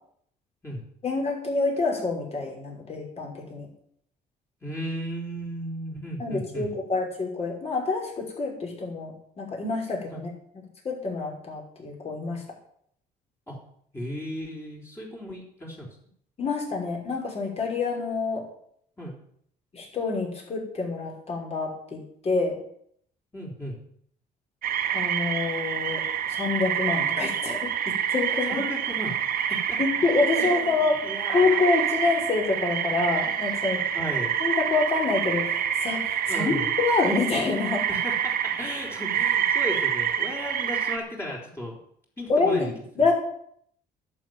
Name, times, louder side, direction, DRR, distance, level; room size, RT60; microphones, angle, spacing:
voice 1, 1.0-3.7 6.2-9.1 9.4-10.3 10.8-12.4 16.4-18.5 19.7-22.6 24.9-26.0 26.3-28.7 29.5-31.0 31.3-33.8 34.4-37.9 42.3-43.1, left 3 dB, 40° left, 0 dB, 5.4 m, -27 dB
voice 2, 4.6-6.7 10.1-10.2 13.5-13.6 13.9-15.9 19.0-19.1 23.3-23.8 28.4-29.8 30.4-31.6 33.7-34.3 36.2-36.7 37.9-41.8 42.2-42.7, equal, 15° left, -3 dB, 4.0 m, -35 dB
sound 1, 24.6-41.0, right 9 dB, 60° right, 1.6 m, -27 dB
11.5 x 7.3 x 9.5 m, 0.67 s
cardioid pair, 110°, 17 cm